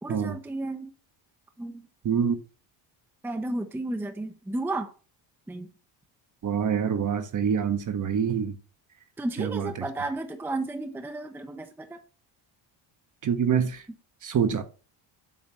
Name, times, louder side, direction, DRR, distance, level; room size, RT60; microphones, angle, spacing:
voice 1, 0.0-0.9 1.6-1.9 3.2-4.9 5.5-5.7 9.2-12.0, right 2 dB, 5° right, 0.6 m, -33 dB
voice 2, 2.0-2.4 6.4-8.6 9.4-9.7 13.2-13.8 14.2-14.6, right 7 dB, 40° right, 0.9 m, -26 dB
7.4 x 3.2 x 5.8 m
cardioid pair, 115°, 48 cm